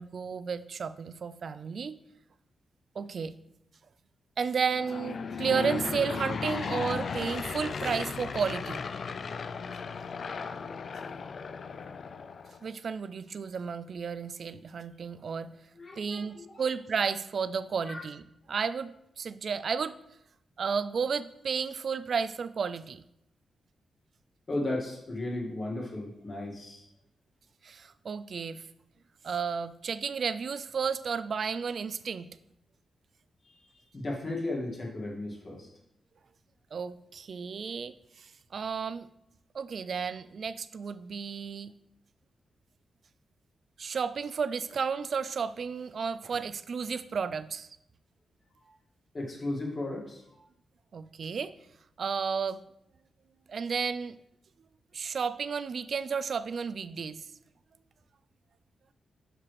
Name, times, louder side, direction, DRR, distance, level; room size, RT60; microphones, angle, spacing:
voice 1, 0.0-2.0 3.0-3.3 4.4-8.8 12.6-15.5 16.0-20.0 20.6-23.0 27.6-28.6 29.2-32.3 36.7-39.1 39.5-41.7 43.8-47.7 50.9-51.5 52.0-52.6 53.5-54.2 54.9-57.2, right 6 dB, 60° right, 14 dB, 0.3 m, -32 dB
Aircraft / Engine, 4.7-12.7, left 5 dB, 55° left, 0.3 m, -36 dB
voice 2, 15.8-16.5 17.8-18.0 24.5-26.8 33.4-33.6 33.9-35.7 49.1-50.4, left 2 dB, 40° left, -2 dB, 2.0 m, -35 dB
6.7 x 5.8 x 3.2 m, 0.79 s
cardioid pair, 100°, 0 cm